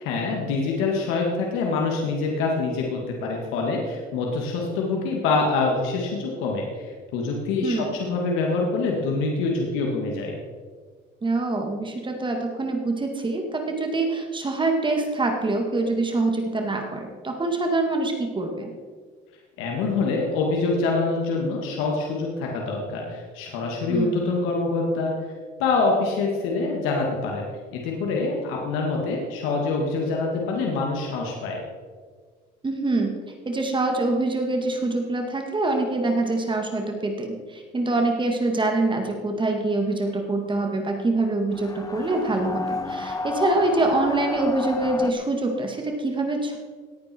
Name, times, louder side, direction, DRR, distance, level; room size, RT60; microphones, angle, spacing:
voice 1, 0.0-10.4 19.6-25.1 25.6-27.5 27.7-31.6, left 3 dB, 90° left, 0 dB, 2.3 m, -25 dB
voice 2, 7.6-7.9 11.2-18.7 23.9-24.2 32.6-33.1 33.5-46.6, right 2 dB, 25° right, 3 dB, 2.1 m, -25 dB
sound 1, 41.5-45.1, left 3 dB, 20° left, 0.9 m, -31 dB
18.0 x 9.5 x 4.6 m, 1.6 s
cardioid pair, 105°, 20 cm